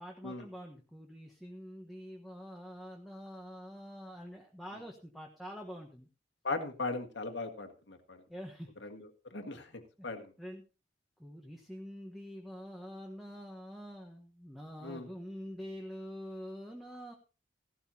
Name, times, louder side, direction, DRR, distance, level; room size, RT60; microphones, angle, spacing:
voice 1, 0.0-6.1 8.3-8.7 10.0-10.1 10.4-10.6 11.2-17.1, equal, ahead, 0 dB, 1.3 m, -46 dB
voice 2, 6.4-8.2 8.8-10.3 14.8-15.1, left 3 dB, 85° left, 6 dB, 1.9 m, -39 dB
16.0 x 12.5 x 2.9 m, 0.33 s
head